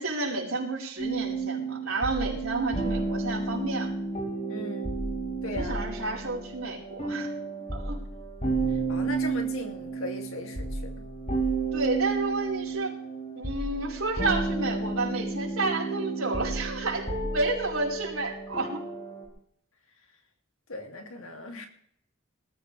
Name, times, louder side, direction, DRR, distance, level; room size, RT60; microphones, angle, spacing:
voice 1, 0.0-3.9 5.4-7.3 7.7-8.0 11.7-12.9 13.3-18.8, right 3 dB, 80° right, -2 dB, 5.0 m, -31 dB
sound 1, 1.0-19.3, right 3 dB, 35° left, 5.2 m, -32 dB
voice 2, 4.5-4.9 5.4-5.8 8.7-10.9 20.7-21.7, left 2 dB, 75° left, 3 dB, 2.8 m, -38 dB
20.5 x 14.0 x 3.5 m, 0.66 s
head